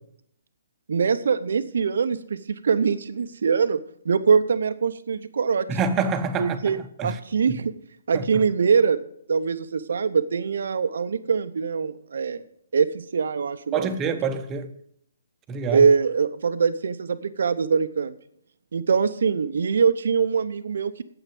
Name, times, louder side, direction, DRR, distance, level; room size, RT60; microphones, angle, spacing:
voice 1, 0.9-5.7 6.4-7.7 8.1-9.0 9.3-12.4 12.7-13.9 15.7-18.1 18.7-21.0, right 6 dB, 65° right, 0.7 m, -23 dB
voice 2, 5.7-7.2 8.1-8.2 13.7-14.7 15.5-15.9, right 5 dB, 20° right, 1.0 m, -27 dB
9.1 x 8.0 x 7.5 m
hypercardioid pair, 140°, 0 cm